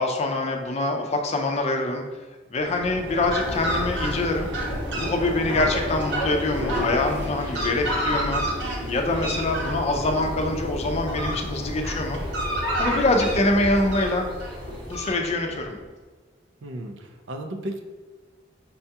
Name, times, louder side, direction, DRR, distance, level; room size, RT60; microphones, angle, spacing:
voice 1, 0.0-2.0 2.5-4.5 4.9-8.4 8.9-12.2 12.8-14.3 14.9-15.8, left 2 dB, 35° left, 3 dB, 0.4 m, -24 dB
Fowl, 2.6-15.6, equal, 70° right, 0.9 m, -29 dB
sound 1, 3.4-15.1, equal, 25° right, 0.7 m, -41 dB
voice 2, 16.6-17.8, right 1 dB, 85° right, 4 dB, 0.5 m, -34 dB
5.4 x 2.3 x 2.8 m, 1.3 s
head